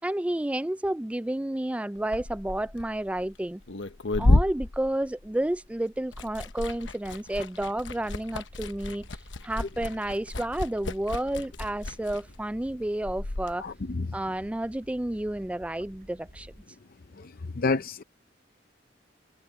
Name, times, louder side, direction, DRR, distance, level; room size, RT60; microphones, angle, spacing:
voice 1, 0.0-3.6 4.2-9.1 9.4-13.6 14.1-16.5, right 1 dB, 5° right, 0.3 m, -31 dB
Liquid, 2.0-5.7 5.9-13.5, left 2 dB, 75° left, 1.1 m, -30 dB
sound 1, 7.8-16.7, equal, 50° right, 4.4 m, -52 dB
voice 2, 13.6-14.2 17.1-18.0, left 3 dB, 50° left, 0.6 m, -30 dB
head